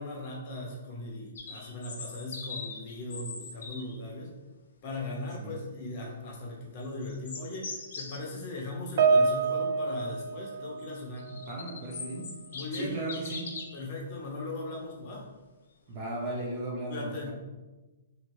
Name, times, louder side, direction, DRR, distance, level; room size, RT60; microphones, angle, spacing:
voice 1, 0.0-4.3 4.8-11.3 12.5-13.0 13.7-15.3 16.9-17.3, left 2 dB, 30° left, -2 dB, 0.9 m, -38 dB
sound 1, 1.3-4.0 6.8-8.2 10.9-13.9, left 4 dB, 65° left, 0.7 m, -41 dB
Piano, 9.0-11.6 11.9-12.2 13.0-13.1, right 4 dB, 50° right, 0.3 m, -27 dB
voice 2, 11.3-12.3 12.7-13.5 15.9-17.3, right 2 dB, 25° right, -2 dB, 0.7 m, -36 dB
3.1 x 2.6 x 4.4 m, 1.2 s
hypercardioid pair, 170°, 0 cm